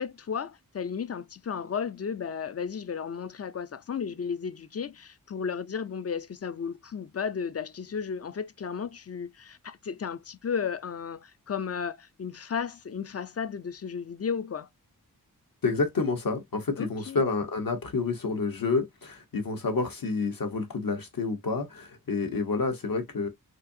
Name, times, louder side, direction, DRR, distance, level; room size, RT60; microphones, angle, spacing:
voice 1, 0.0-14.7 16.8-17.2, left 6 dB, 40° left, 0.5 m, -34 dB
voice 2, 15.6-23.3, left 4 dB, 65° left, 1.1 m, -29 dB
4.2 x 2.6 x 2.7 m
wide cardioid pair, 60°, 37 cm